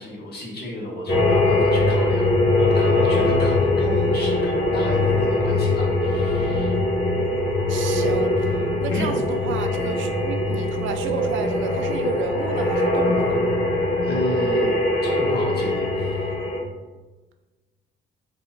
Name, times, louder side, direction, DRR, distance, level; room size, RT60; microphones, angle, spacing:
voice 1, 0.0-6.8 8.9-9.1 14.0-14.7 15.0-16.3, left 1 dB, 55° left, -3 dB, 1.4 m, -32 dB
sound 1, 1.1-16.6, left 2 dB, 70° left, 1.5 m, -21 dB
voice 2, 7.7-13.4, right 5 dB, 80° right, 7 dB, 0.5 m, -32 dB
4.0 x 2.4 x 4.3 m, 1.2 s
cardioid pair, 90°, 20 cm